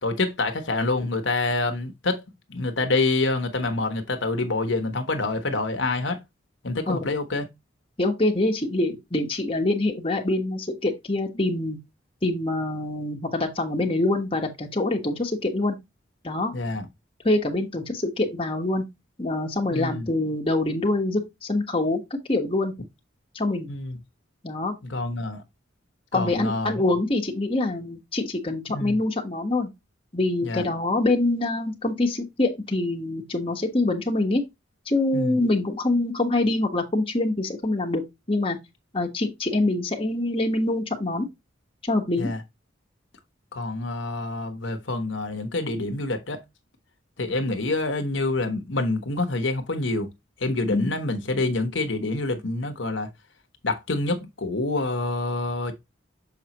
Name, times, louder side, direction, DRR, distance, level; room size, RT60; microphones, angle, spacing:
voice 1, 0.0-2.2 2.5-6.2 6.6-7.5 16.5-16.9 19.7-20.1 23.7-24.0 24.8-25.4 26.1-26.8 28.7-29.0 30.4-30.7 35.1-35.4 42.2-42.4 43.5-46.4 47.2-50.1 50.4-53.1 53.6-55.7, left 2 dB, 80° left, 1.1 m, -27 dB
voice 2, 8.0-11.8 12.2-15.8 16.2-16.5 17.2-18.8 19.2-22.7 23.3-23.7 24.4-24.7 26.1-29.7 30.1-34.4 34.9-38.0 38.3-38.6 38.9-41.3 41.8-42.3 50.7-50.9, left 2 dB, 30° left, 1.4 m, -25 dB
7.1 x 4.9 x 3.0 m
head